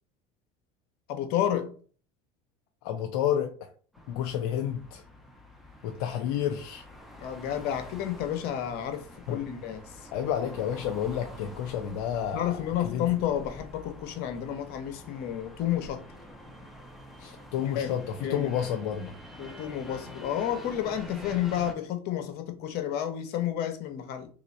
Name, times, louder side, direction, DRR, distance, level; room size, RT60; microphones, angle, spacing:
voice 1, 1.1-1.7 7.2-9.8 12.3-16.0 17.6-18.6 19.4-24.3, left 10 dB, 65° left, 1.0 m, -31 dB
voice 2, 2.8-3.7 4.1-5.0 5.8-6.8 9.3-9.4 10.1-13.1 17.2-19.1, left 9 dB, 85° left, 0.6 m, -30 dB
sound 1, 3.9-21.7, left 1 dB, ahead, 1.0 m, -47 dB
3.2 x 3.0 x 4.0 m
supercardioid pair, 90°, 18 cm